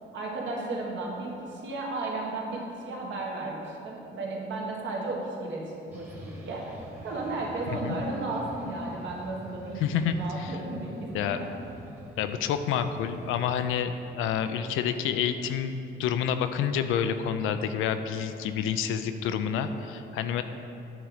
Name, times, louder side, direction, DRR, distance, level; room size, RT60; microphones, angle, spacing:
voice 1, 0.1-11.5, right 2 dB, 70° right, -2 dB, 1.5 m, -34 dB
sound 1, 5.9-13.6, equal, 10° right, 1.2 m, -45 dB
voice 2, 9.8-10.1 10.4-10.5 11.1-11.4 12.2-20.4, left 8 dB, 90° left, 9 dB, 0.4 m, -28 dB
9.1 x 3.9 x 4.9 m, 2.8 s
cardioid pair, 90°, 20 cm